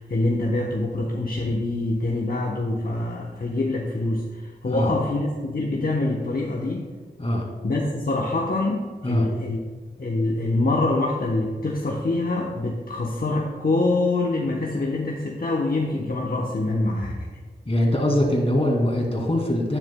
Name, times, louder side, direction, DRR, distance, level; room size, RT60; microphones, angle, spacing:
voice 1, 0.0-6.9 7.6-9.6 10.0-17.3, left 2 dB, 55° left, -2 dB, 1.0 m, -25 dB
voice 2, 17.7-19.8, left 1 dB, 35° left, -1 dB, 2.3 m, -22 dB
10.5 x 9.8 x 2.2 m, 1.5 s
wide cardioid pair, 50°, 18 cm